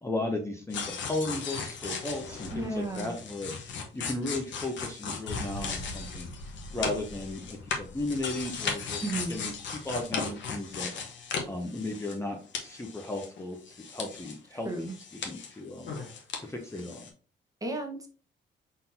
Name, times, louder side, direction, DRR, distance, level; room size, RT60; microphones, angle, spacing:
voice 1, 0.0-6.3 6.7-10.9 11.5-15.9 16.4-17.1, left 2 dB, 15° left, 2 dB, 0.7 m, -35 dB
sound 1, 0.7-12.3 12.5-14.4 14.7-16.4 16.7-17.1, left 5 dB, 65° left, 1.0 m, -37 dB
voice 2, 2.5-3.1 9.0-9.4 14.6-14.9 17.6-18.1, right 2 dB, 15° right, 2 dB, 1.1 m, -33 dB
4.1 x 3.9 x 2.7 m, 0.40 s
cardioid pair, 90°, 20 cm